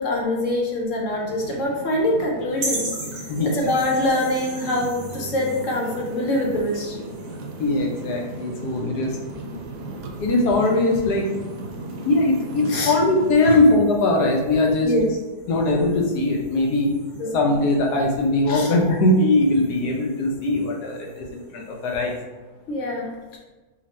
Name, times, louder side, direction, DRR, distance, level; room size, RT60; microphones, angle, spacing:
voice 1, 0.0-2.9 3.4-7.1 12.7-12.9 13.4-13.6 14.8-15.2 17.2-17.4 18.5-18.7 22.7-23.4, left 1 dB, 60° left, -1 dB, 1.1 m, -24 dB
sound 1, 1.1-13.4, right 2 dB, 90° right, 1.2 m, -36 dB
sound 2, 2.6-22.2, right 2 dB, 55° right, 1.7 m, -40 dB
voice 2, 7.6-9.1 10.2-11.3 12.0-14.9 15.5-16.9 17.3-22.2, left 2 dB, 90° left, 0 dB, 1.4 m, -20 dB
4.3 x 2.4 x 4.1 m, 1.2 s
omnidirectional pair, 1.7 m